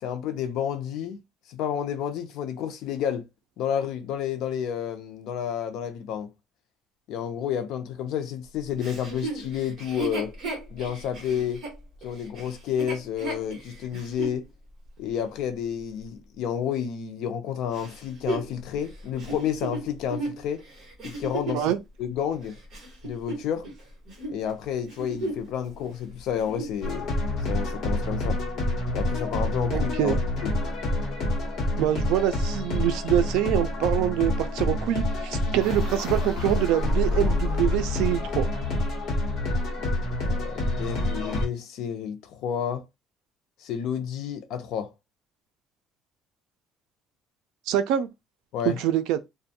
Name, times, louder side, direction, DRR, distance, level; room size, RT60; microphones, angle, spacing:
voice 1, 0.0-1.2 1.5-3.2 3.6-6.3 7.1-10.3 10.7-11.6 12.0-14.4 15.0-20.6 21.0-21.7 22.0-22.5 23.0-23.7 24.3-27.1 27.5-28.4 28.9-30.2 30.4-30.5 40.2-42.8 43.6-44.9 48.5-48.8, left 9 dB, 60° left, 0.5 m, -30 dB
Chuckle chortle, 8.8-14.4 15.0-15.1 17.7-21.7 22.3-23.8 24.1-24.4 24.8-25.5 25.8-25.9 26.3-26.8 27.4-27.5, right 2 dB, 35° right, 1.4 m, -35 dB
sound 1, 26.8-41.5, left 1 dB, 40° left, 0.9 m, -27 dB
voice 2, 29.7-30.2 31.8-38.5 47.7-48.1 48.7-49.2, right 11 dB, 80° right, 0.4 m, -25 dB
2.5 x 2.2 x 2.7 m
cardioid pair, 180°, 0 cm